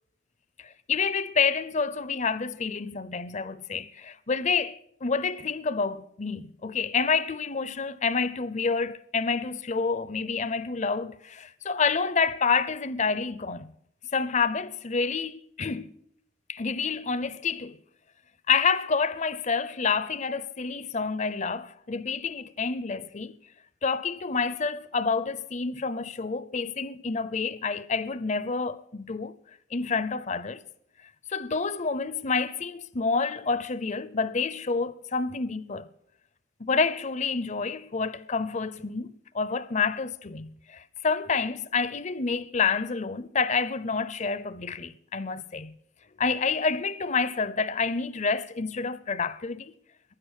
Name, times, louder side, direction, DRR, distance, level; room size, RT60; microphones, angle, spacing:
voice 1, 0.6-13.7 14.1-16.0 16.5-17.8 18.5-23.4 23.8-29.4 29.7-30.6 31.3-35.9 36.6-45.7 46.2-49.7, left 5 dB, 35° left, 0.6 m, -28 dB
15.5 x 11.0 x 8.1 m
head